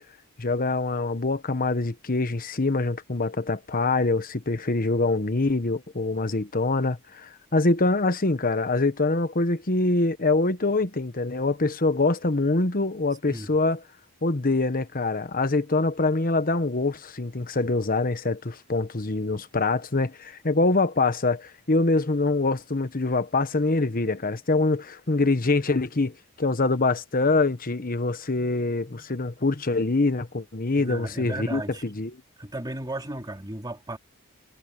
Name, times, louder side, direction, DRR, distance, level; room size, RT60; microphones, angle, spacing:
voice 1, 0.4-13.8 14.2-32.2, left 3 dB, 40° left, 1.2 m, -24 dB
voice 2, 30.8-31.8 32.4-34.0, right 1 dB, 20° right, 2.6 m, -35 dB
head